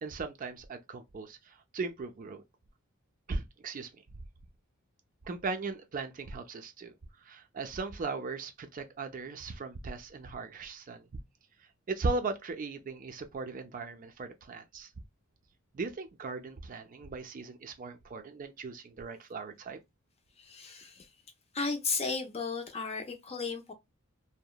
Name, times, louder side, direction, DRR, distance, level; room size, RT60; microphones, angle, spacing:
voice 1, 0.0-2.4 3.3-3.9 5.2-6.9 7.3-11.1 11.9-14.9 15.7-19.8, right 3 dB, 40° right, 0.4 m, -38 dB
voice 2, 20.4-21.1 21.5-23.7, left 4 dB, 30° left, 0.6 m, -34 dB
2.8 x 2.1 x 2.2 m
head